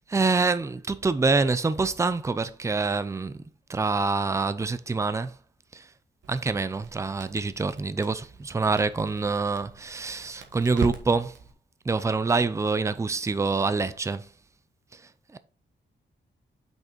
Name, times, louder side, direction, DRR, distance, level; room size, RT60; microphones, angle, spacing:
voice 1, 0.1-3.4 3.7-5.3 5.7-5.9 6.3-11.4 11.8-14.3 14.9-15.0 15.3-15.4, right 4 dB, 15° right, 0.5 m, -26 dB
Crackle, 6.2-11.5, right 5 dB, 80° right, 1.4 m, -40 dB
6.2 x 5.4 x 4.3 m
wide cardioid pair, 150°, 19 cm